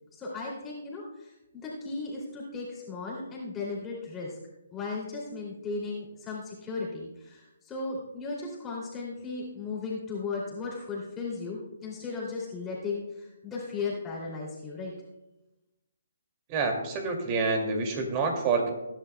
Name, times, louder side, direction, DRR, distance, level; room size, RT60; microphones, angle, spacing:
voice 1, 0.1-4.3 4.7-14.9, left 4 dB, 15° left, -5 dB, 2.7 m, -36 dB
voice 2, 16.5-18.7, right 4 dB, 30° right, 3 dB, 2.4 m, -27 dB
21.0 x 10.5 x 2.2 m, 1.0 s
hypercardioid pair, 150°, 0 cm